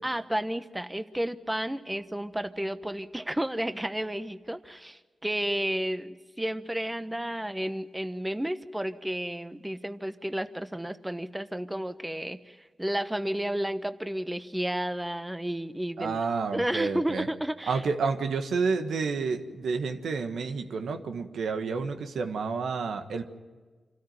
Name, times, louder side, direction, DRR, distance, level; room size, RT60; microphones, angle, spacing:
voice 1, 0.0-16.2 16.5-17.8, right 1 dB, 10° right, 10 dB, 1.1 m, -32 dB
voice 2, 16.0-17.2 17.7-23.2, right 4 dB, 80° right, 6 dB, 1.5 m, -30 dB
26.5 x 13.5 x 9.5 m, 1.4 s
cardioid pair, 45°, 0 cm